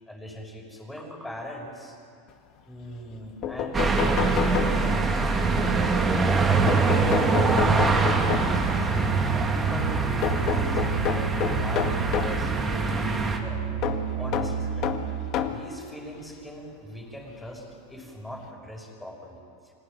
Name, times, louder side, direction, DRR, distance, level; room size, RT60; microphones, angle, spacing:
voice 1, 0.1-2.0 2.7-8.9 9.3-13.6 14.2-14.9 15.4-19.4 19.6-19.7, equal, 5° left, 0 dB, 6.0 m, -41 dB
sound 1, 3.1-3.2 3.4-5.2 6.7-8.7 10.2-12.4 13.8-15.7 16.6-16.7 18.0-18.1 18.4-18.5, left 9 dB, 45° left, 1.9 m, -29 dB
sound 2, 3.7-13.4, right 3 dB, 20° right, 2.6 m, -24 dB
Musical instrument, 5.5-15.4, right 8 dB, 55° right, 3.1 m, -32 dB
25.5 x 18.0 x 10.0 m, 2.4 s
supercardioid pair, 130°, 0 cm